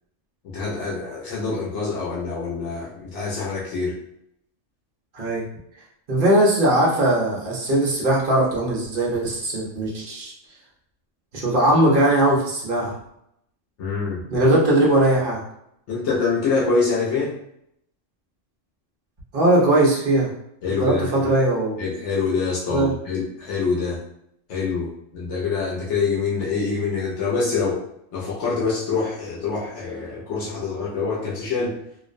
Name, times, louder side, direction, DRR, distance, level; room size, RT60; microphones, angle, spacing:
voice 1, 0.4-4.0 13.8-14.2 15.9-17.3 20.6-21.3 21.8-24.0 24.5-27.8 28.1-31.8, left 4 dB, 70° left, -4 dB, 0.8 m, -25 dB
voice 2, 6.1-10.3 11.3-13.0 14.3-15.4 19.3-20.3 20.8-21.8 22.7-22.9, right 1 dB, 55° right, -4 dB, 0.7 m, -19 dB
2.5 x 2.0 x 2.5 m, 0.76 s
omnidirectional pair, 1.3 m